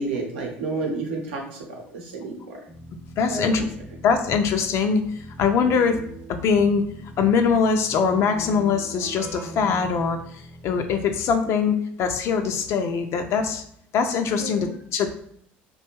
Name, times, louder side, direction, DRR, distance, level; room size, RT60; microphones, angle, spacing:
voice 1, 0.0-1.4 1.7-2.6 3.3-3.5 14.4-14.7, right 3 dB, 85° right, 1 dB, 0.7 m, -30 dB
Keyboard (musical), 2.7-11.1, right 2 dB, 15° right, 0.4 m, -42 dB
voice 2, 3.2-3.7 4.0-5.0 5.4-6.0 6.3-6.8 7.2-10.2 10.6-13.6 13.9-15.1, left 6 dB, 55° left, 5 dB, 0.3 m, -22 dB
2.5 x 2.2 x 2.9 m, 0.67 s
hypercardioid pair, 75°, 6 cm